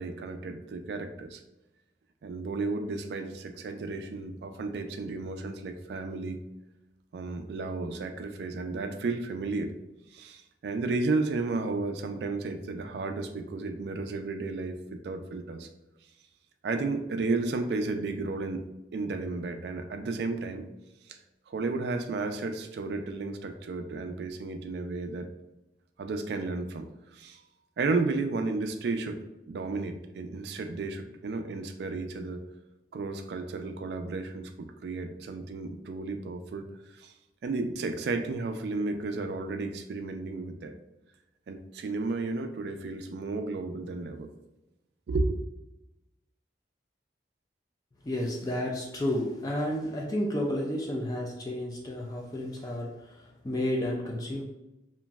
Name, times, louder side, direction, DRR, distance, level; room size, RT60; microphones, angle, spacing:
voice 1, 0.0-1.4 2.2-6.4 7.1-9.7 10.1-15.7 16.6-18.6 18.9-20.7 21.1-21.2 21.5-25.3 26.0-27.4 27.8-29.2 29.5-32.4 32.9-36.7 36.9-37.1 37.4-40.7 41.5-44.3 45.1-45.4, right 3 dB, 70° right, 6 dB, 0.3 m, -33 dB
voice 2, 48.0-54.4, left 1 dB, 20° left, -1 dB, 0.3 m, -31 dB
3.0 x 2.5 x 2.3 m, 0.94 s
head